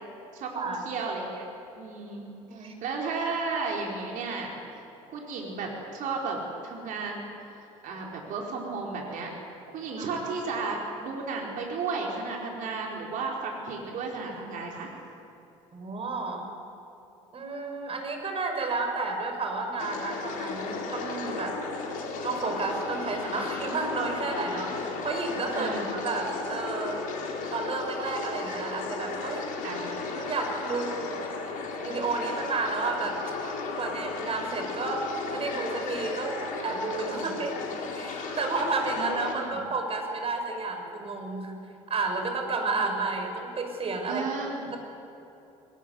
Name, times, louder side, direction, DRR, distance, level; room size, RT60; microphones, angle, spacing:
voice 1, 0.3-1.5 1.7-2.2 2.5-4.5 5.1-7.3 7.8-9.3 9.7-14.9 25.5-25.9 29.6-29.9 37.1-37.4 38.9-39.6 42.7-42.9 44.1-44.6, right 4 dB, 55° right, -1 dB, 4.5 m, -33 dB
voice 2, 2.4-2.8 10.0-10.1 15.7-16.4 17.3-21.6 22.2-25.7 26.0-27.0 27.5-29.5 30.2-31.2 31.8-37.6 37.9-41.5 41.9-44.2, right 3 dB, 35° right, 4 dB, 6.1 m, -31 dB
sound 1, 19.8-39.3, left 4 dB, 55° left, 4.7 m, -35 dB
22.0 x 20.5 x 9.6 m, 2.9 s
hypercardioid pair, 60°, 16 cm